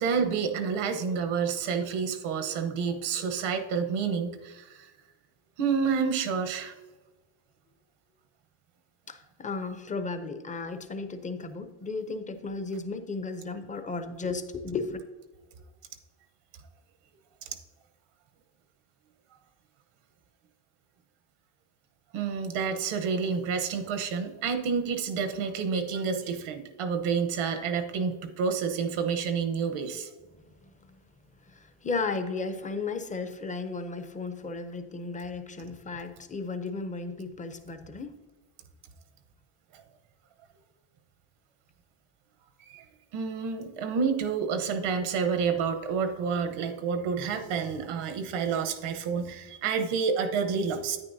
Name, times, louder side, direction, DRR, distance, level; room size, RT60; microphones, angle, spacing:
voice 1, 0.0-4.9 5.6-6.7 22.1-30.1 39.7-39.8 42.6-42.8 43.1-51.0, right 6 dB, 90° right, 7 dB, 1.1 m, -29 dB
voice 2, 9.1-15.0 30.7-30.8 31.5-38.2, left 4 dB, 15° left, 8 dB, 0.5 m, -34 dB
9.6 x 9.4 x 2.7 m, 1.3 s
cardioid pair, 140°, 48 cm